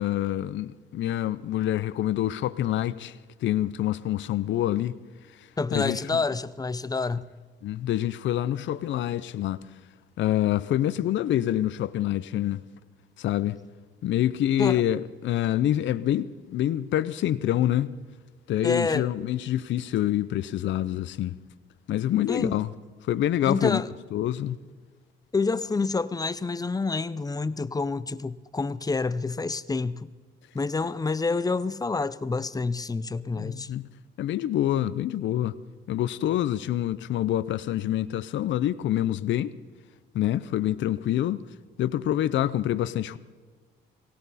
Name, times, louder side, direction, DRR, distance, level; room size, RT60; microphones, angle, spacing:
voice 1, 0.0-5.0 5.3-6.2 7.6-9.6 10.2-12.6 13.2-13.6 14.0-17.9 18.5-21.4 21.9-22.7 23.1-23.8 24.1-24.6 33.3-33.8 34.2-35.6 35.9-39.5 40.1-41.4 41.8-43.2, left 12 dB, 70° left, 0.6 m, -26 dB
voice 2, 5.6-7.3 14.6-14.8 18.6-19.1 22.3-22.6 23.5-23.9 25.3-30.1 30.5-33.7, left 4 dB, 20° left, 0.6 m, -28 dB
18.5 x 17.5 x 4.2 m
cardioid pair, 90°, 20 cm